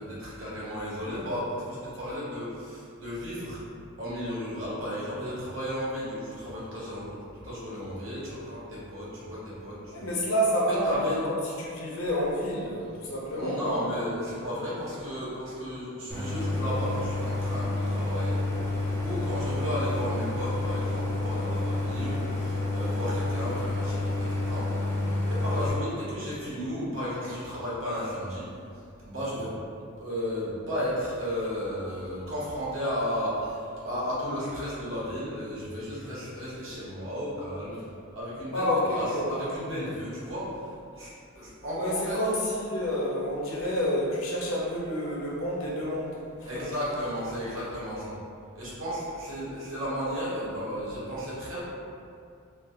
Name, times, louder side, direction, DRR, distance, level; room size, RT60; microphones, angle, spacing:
voice 1, 0.0-3.6 4.0-7.2 7.4-10.0 10.8-11.2 13.4-18.4 19.0-24.6 25.3-28.4 29.0-29.5 30.0-33.6 33.8-37.8 38.1-38.6 38.9-40.5 41.0-42.2 46.5-48.1 48.5-51.6, equal, 60° right, -8 dB, 1.0 m, -34 dB
voice 2, 9.9-13.8 38.5-39.5 41.8-46.7, equal, 70° left, -4 dB, 0.6 m, -29 dB
Idling, 16.1-25.7, left 2 dB, 10° left, 0.5 m, -29 dB
3.1 x 2.3 x 2.7 m, 2.4 s
head